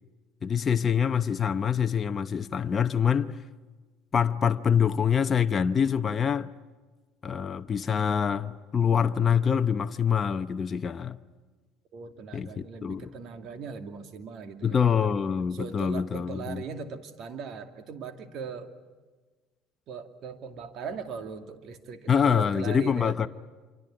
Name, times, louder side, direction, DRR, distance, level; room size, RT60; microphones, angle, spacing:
voice 1, 0.4-3.4 4.1-6.5 7.2-11.2 12.3-13.1 14.6-16.6 22.1-23.3, left 7 dB, 30° left, 0.8 m, -25 dB
voice 2, 11.9-15.1 15.5-18.7 19.9-23.2, right 5 dB, 55° right, 2.4 m, -39 dB
26.5 x 24.5 x 9.0 m
supercardioid pair, 110°, 0 cm